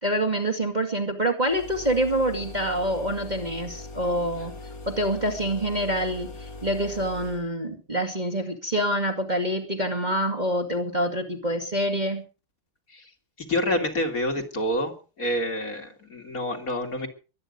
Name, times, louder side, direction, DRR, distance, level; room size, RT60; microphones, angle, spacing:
voice 1, 0.0-4.5 4.9-12.2, right 1 dB, 20° right, 3 dB, 2.1 m, -26 dB
sound 1, 1.5-7.5, left 2 dB, 55° left, 3.0 m, -41 dB
voice 2, 13.5-14.9 15.2-17.1, left 1 dB, 40° left, 3 dB, 2.7 m, -27 dB
22.5 x 9.8 x 5.3 m, 0.36 s
omnidirectional pair, 2.3 m